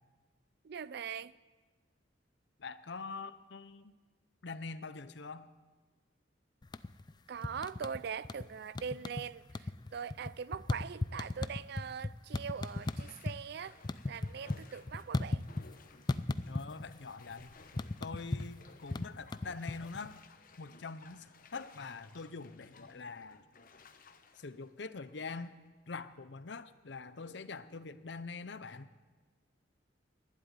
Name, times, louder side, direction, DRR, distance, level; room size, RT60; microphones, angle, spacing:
voice 1, 0.6-1.3 7.3-15.4, right 6 dB, 60° right, 0.4 m, -42 dB
voice 2, 2.6-3.9 4.4-5.5 16.5-17.5 18.0-20.2 20.6-23.4 24.4-25.5 25.9-28.9, left 4 dB, 65° left, 0.7 m, -44 dB
sound 1, 6.6-7.1 7.4-8.5 8.7-9.2 9.5-13.4 13.7-15.8 16.1-16.9 17.2-20.1, left 2 dB, 20° left, 0.4 m, -36 dB
Bathtub (filling or washing), 10.4-10.8 11.2-11.4 12.6-25.7 26.1-26.2, left 4 dB, 45° left, 1.0 m, -59 dB
12.0 x 11.0 x 9.5 m
head